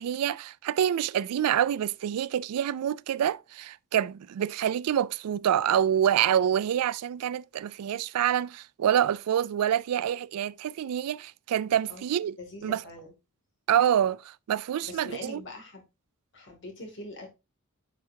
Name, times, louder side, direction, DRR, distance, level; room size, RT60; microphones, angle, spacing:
voice 1, 0.0-12.3 12.6-12.8 13.7-14.2 14.5-15.4, right 10 dB, 85° right, 0.3 m, -26 dB
voice 2, 12.4-13.1 14.8-15.8 16.3-17.3, left 1 dB, 55° left, 2.4 m, -43 dB
9.9 x 4.9 x 2.7 m
head